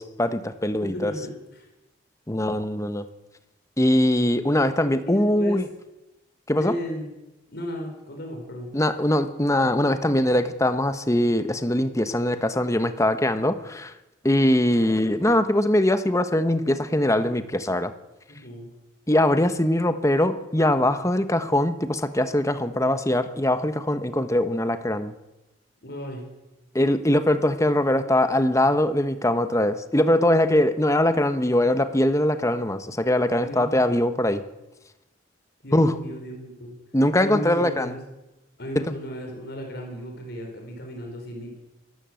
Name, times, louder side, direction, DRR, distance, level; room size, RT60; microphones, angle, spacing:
voice 1, 0.0-1.1 2.3-3.1 3.8-5.6 6.5-6.7 8.7-13.9 14.2-17.9 19.1-25.1 26.7-34.4 35.7-35.9 36.9-37.9, left 1 dB, 15° left, 10 dB, 1.1 m, -22 dB
voice 2, 0.8-1.7 5.1-5.6 6.6-7.1 7.5-8.7 18.3-18.7 25.8-26.2 33.3-34.0 35.6-36.7 37.2-38.0 38.6-41.6, equal, 55° left, 2 dB, 4.9 m, -35 dB
23.5 x 14.0 x 7.8 m, 1.0 s
head